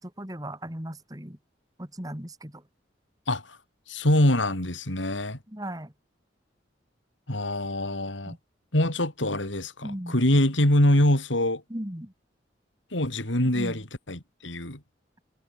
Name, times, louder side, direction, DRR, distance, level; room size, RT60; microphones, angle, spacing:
voice 1, 0.0-1.4 1.8-2.6 5.5-5.9 8.3-8.4 9.8-10.2 11.7-12.1 13.5-13.8, right 1 dB, 20° right, 3.1 m, -37 dB
voice 2, 3.3-3.6 3.9-5.4 7.3-8.3 8.7-11.6 12.9-14.8, left 1 dB, 85° left, 5.0 m, -24 dB
head